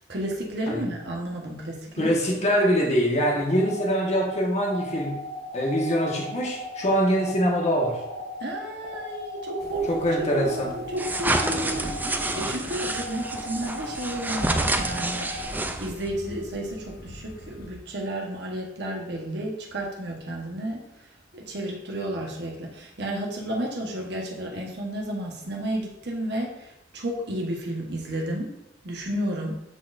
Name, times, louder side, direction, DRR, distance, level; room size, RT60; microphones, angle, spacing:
voice 1, 0.1-2.2 8.4-15.3 15.8-20.9 21.3-28.5 28.8-29.5, right 1 dB, 65° right, -1 dB, 1.3 m, -32 dB
voice 2, 2.0-5.1 5.5-8.0 9.9-10.7, equal, 40° left, -2 dB, 1.5 m, -24 dB
sound 1, 3.5-15.4, left 2 dB, 40° right, 2.1 m, -37 dB
sound 2, 9.6-17.7, left 1 dB, 55° left, 0.8 m, -45 dB
sound 3, 11.0-16.1, right 2 dB, 10° right, 0.5 m, -28 dB
12.5 x 4.1 x 2.6 m, 0.85 s
head